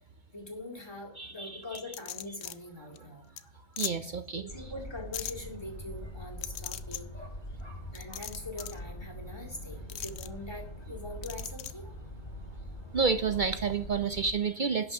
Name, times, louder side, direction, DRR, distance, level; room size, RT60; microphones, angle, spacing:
voice 1, 0.3-3.5 4.3-7.3 7.9-11.8, left 1 dB, 20° left, 1 dB, 2.1 m, -43 dB
voice 2, 1.2-1.8 3.8-4.4 12.9-14.9, right 5 dB, 55° right, 10 dB, 0.5 m, -30 dB
sound 1, 1.7-2.5 3.0-3.1 3.4-3.5 3.8-3.9 5.1-5.3 6.4-7.0 7.9-8.8 9.9-10.3 11.2-11.7, left 10 dB, 65° left, 0.8 m, -38 dB
sound 2, 4.5-14.3, equal, 80° left, 5.2 m, -43 dB
11.5 x 6.1 x 5.9 m, 0.68 s
omnidirectional pair, 1.3 m